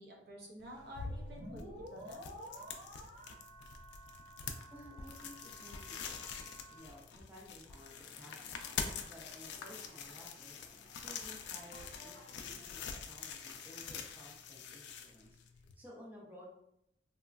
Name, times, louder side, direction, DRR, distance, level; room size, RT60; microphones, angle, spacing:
voice 1, 0.0-2.2, equal, 60° right, -2 dB, 0.7 m, -51 dB
sound 1, 0.6-15.7, left 6 dB, 65° left, 0.3 m, -45 dB
sound 2, 1.1-6.8, equal, 35° right, 1.0 m, -52 dB
voice 2, 4.7-6.3 6.7-16.5, equal, 10° right, -4 dB, 0.4 m, -56 dB
sound 3, 7.9-13.0, left 1 dB, 35° left, 0.7 m, -60 dB
2.9 x 2.2 x 2.4 m, 0.78 s
head